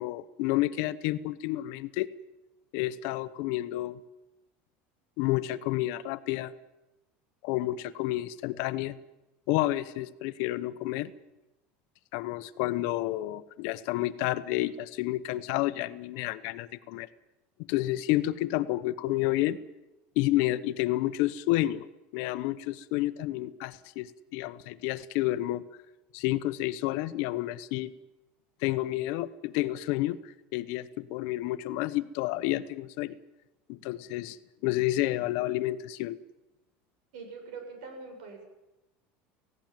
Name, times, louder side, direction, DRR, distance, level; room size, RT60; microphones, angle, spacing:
voice 1, 0.0-2.1 2.7-4.0 5.2-6.5 7.4-9.0 9.5-11.1 12.1-17.1 17.7-19.6 20.2-21.9 22.1-25.6 26.1-27.9 28.6-30.2 30.5-33.1 33.7-34.4 34.6-36.2, left 16 dB, 65° left, 13 dB, 1.0 m, -30 dB
voice 2, 37.1-38.5, right 4 dB, 90° right, 4 dB, 7.7 m, -43 dB
17.5 x 16.5 x 9.2 m, 0.99 s
cardioid pair, 155°, 5 cm